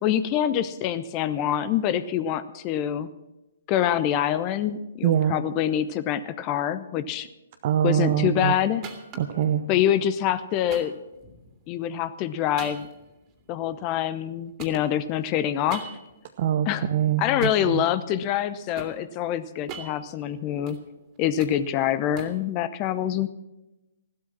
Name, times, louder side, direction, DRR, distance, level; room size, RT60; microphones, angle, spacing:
voice 1, 0.0-3.1 3.7-7.3 7.8-8.8 9.7-11.0 11.7-12.9 13.5-15.8 16.6-16.9 17.2-20.8 21.2-23.3, left 10 dB, 30° left, 14 dB, 0.8 m, -25 dB
voice 2, 5.0-5.4 7.6-8.5 9.2-9.6 16.4-17.8, right 9 dB, 45° right, 6 dB, 0.9 m, -24 dB
sound 1, 8.8-9.4 10.7-11.7 12.6-14.3 14.6-16.2 17.4-17.8 18.3-19.0 19.5-20.8 21.2-22.5, right 5 dB, 25° right, 2.5 m, -42 dB
15.5 x 12.5 x 6.0 m, 0.99 s
figure-of-eight pair, 125°, 0 cm